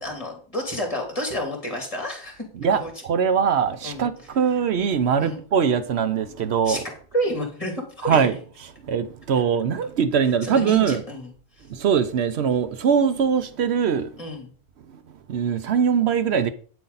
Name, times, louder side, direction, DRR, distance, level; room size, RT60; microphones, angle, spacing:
voice 1, 0.0-2.4 2.7-2.9 3.8-4.1 5.2-5.4 6.6-6.8 7.1-8.3 10.4-11.3 11.6-11.7 14.2-14.5, equal, 30° left, 3.0 m, -29 dB
voice 2, 2.6-6.8 8.0-8.3 8.8-11.0 11.7-14.1 15.3-16.5, right 7 dB, 75° right, 1.0 m, -22 dB
9.2 x 7.9 x 4.1 m
omnidirectional pair, 1.1 m